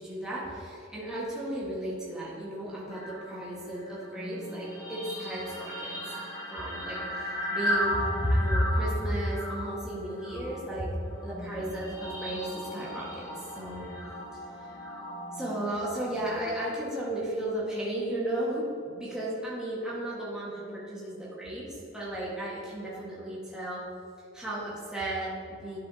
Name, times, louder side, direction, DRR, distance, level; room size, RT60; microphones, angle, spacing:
voice 1, 0.0-6.0 6.5-10.9 11.2-13.9 15.3-23.8 24.3-25.8, right 1 dB, 5° right, -8 dB, 1.6 m, -33 dB
sound 1, 2.9-16.7, equal, 20° left, 1.6 m, -36 dB
11.5 x 7.0 x 2.8 m, 2.7 s
head